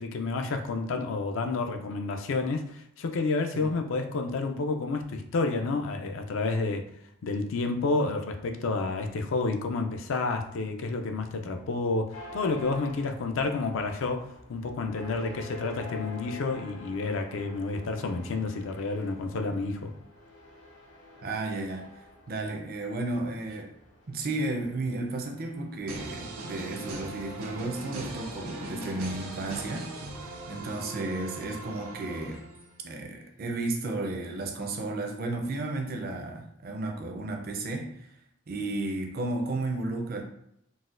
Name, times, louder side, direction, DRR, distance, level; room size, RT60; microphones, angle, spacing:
voice 1, 0.0-6.9 7.2-19.9, left 3 dB, 60° left, 5 dB, 0.4 m, -30 dB
sound 1, 12.1-26.0, left 1 dB, 90° left, 1.2 m, -47 dB
voice 2, 21.2-21.9 22.3-23.7 24.1-29.9 30.5-32.4 32.8-37.9 38.5-40.2, right 2 dB, 45° right, 3 dB, 0.5 m, -33 dB
sound 2, 25.9-32.8, right 2 dB, 90° right, 0.6 m, -40 dB
4.0 x 2.1 x 2.4 m, 0.74 s
head